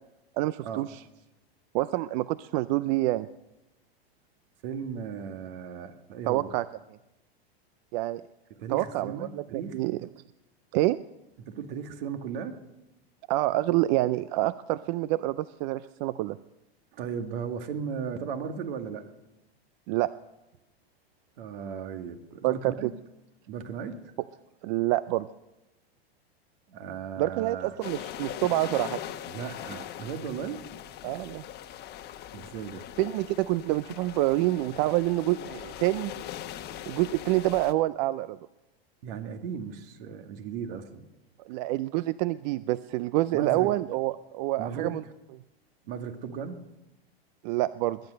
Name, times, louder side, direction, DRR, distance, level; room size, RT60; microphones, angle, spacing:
voice 1, 0.4-1.0 1.7-3.3 6.3-6.6 7.9-8.2 8.7-10.0 10.7-11.0 13.3-16.4 19.9-20.1 22.4-22.9 24.6-25.3 27.2-29.0 31.0-31.4 33.0-36.1 36.9-38.4 41.5-45.0 47.4-48.0, right 17 dB, 45° right, 16 dB, 0.5 m, -27 dB
voice 2, 4.6-6.5 8.6-9.8 11.5-12.6 16.9-19.1 21.4-22.9 23.5-24.1 26.7-27.8 29.3-30.6 32.3-32.9 39.0-41.1 43.3-43.8 44.6-45.1 45.8-46.6, right 7 dB, 65° right, 7 dB, 2.1 m, -36 dB
sound 1, 27.8-37.7, left 11 dB, 30° left, 1.1 m, -41 dB
21.0 x 10.5 x 6.5 m, 0.98 s
hypercardioid pair, 125°, 31 cm